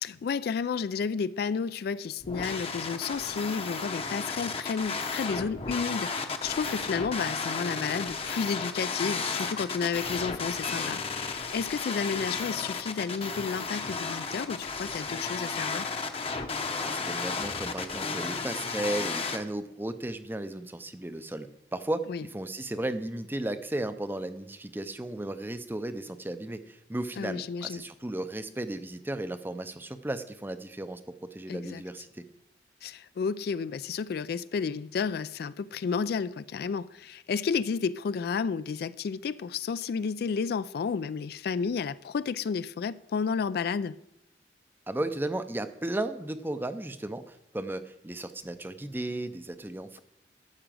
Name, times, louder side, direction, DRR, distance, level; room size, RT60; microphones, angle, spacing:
voice 1, 0.0-15.9 22.1-22.2 27.2-27.8 31.5-31.8 32.8-44.0, left 5 dB, 60° left, 0.3 m, -31 dB
sound 1, 2.2-19.4, left 4 dB, 35° left, 0.8 m, -33 dB
voice 2, 16.8-22.0 22.3-32.2 44.9-50.0, right 1 dB, 10° right, 0.5 m, -35 dB
11.5 x 5.0 x 7.6 m
head